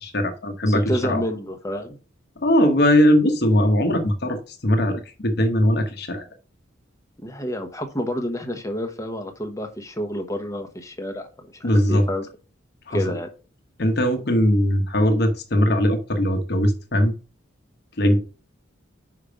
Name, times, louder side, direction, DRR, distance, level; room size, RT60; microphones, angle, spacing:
voice 1, 0.0-1.2 2.4-4.4 4.6-6.3 11.6-12.1 12.9-13.0 13.8-17.1 18.0-18.2, equal, 50° left, 5 dB, 1.1 m, -20 dB
voice 2, 0.7-2.0 7.2-12.2 12.9-13.3, equal, 15° left, 6 dB, 1.0 m, -29 dB
5.7 x 5.1 x 5.1 m, 0.34 s
head